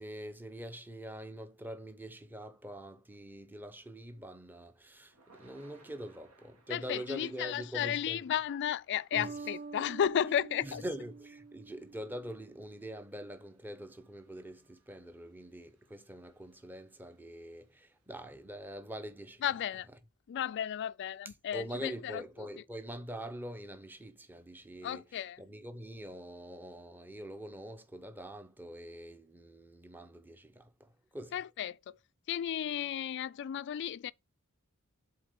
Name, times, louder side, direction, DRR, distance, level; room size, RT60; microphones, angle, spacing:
voice 1, 0.0-8.3 9.2-9.5 10.6-19.6 19.9-20.0 21.2-31.4, equal, 10° right, 0.7 m, -44 dB
Thunder / Rain, 4.2-18.4, right 3 dB, 80° right, 1.8 m, -68 dB
voice 2, 6.7-10.8 19.4-19.9 20.3-22.2 24.8-25.4 31.3-32.0 32.3-34.1, left 9 dB, 55° left, 0.3 m, -34 dB
Bass guitar, 9.1-12.7, right 4 dB, 45° right, 0.5 m, -46 dB
7.8 x 3.8 x 5.0 m
head